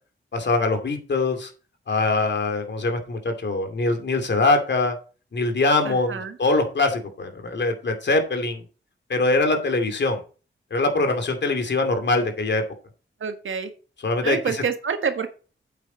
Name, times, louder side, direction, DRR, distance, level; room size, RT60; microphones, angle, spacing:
voice 1, 0.3-1.5 1.9-4.9 5.3-8.6 9.1-10.2 10.7-12.6 14.0-14.6, left 3 dB, 60° left, 6 dB, 2.5 m, -23 dB
voice 2, 5.8-6.4 13.2-13.7 14.2-15.3, right 6 dB, 75° right, 8 dB, 1.5 m, -27 dB
8.5 x 8.4 x 4.0 m, 0.35 s
wide cardioid pair, 115°, 21 cm